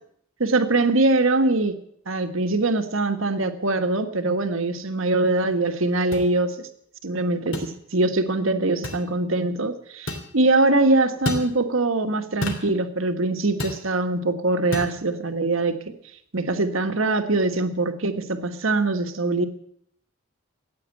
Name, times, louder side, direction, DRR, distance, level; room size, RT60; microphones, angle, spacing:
voice 1, 0.4-1.8 2.1-6.7 7.0-15.8 16.3-19.5, right 2 dB, 70° right, 7 dB, 1.5 m, -23 dB
sound 1, 6.1-6.3 7.5-7.7 8.8-9.0 10.1-10.3 11.2-11.5 12.4-12.7 13.6-13.8 14.7-14.9, left 1 dB, 65° left, 3.0 m, -29 dB
14.5 x 9.1 x 9.0 m, 0.69 s
head